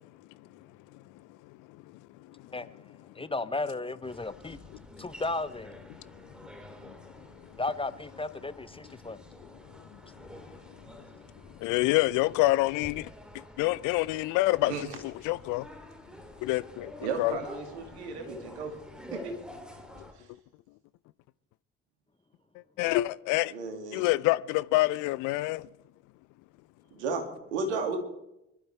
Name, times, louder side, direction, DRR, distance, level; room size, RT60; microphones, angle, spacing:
voice 1, 2.5-4.6 5.0-5.7 7.6-9.2, left 2 dB, 15° left, 0.7 m, -34 dB
sound 1, 4.0-20.1, left 1 dB, 5° right, 3.1 m, -49 dB
voice 2, 11.6-13.1 13.6-14.7 15.0-15.7 16.4-16.9 17.2-17.4 22.8-23.5 23.9-25.7, left 19 dB, 65° left, 0.6 m, -26 dB
voice 3, 17.0-18.7 19.1-19.3 23.5-24.2 26.9-28.0, right 4 dB, 80° right, 2.3 m, -34 dB
24.5 x 12.0 x 3.4 m
figure-of-eight pair, 45°, 33 cm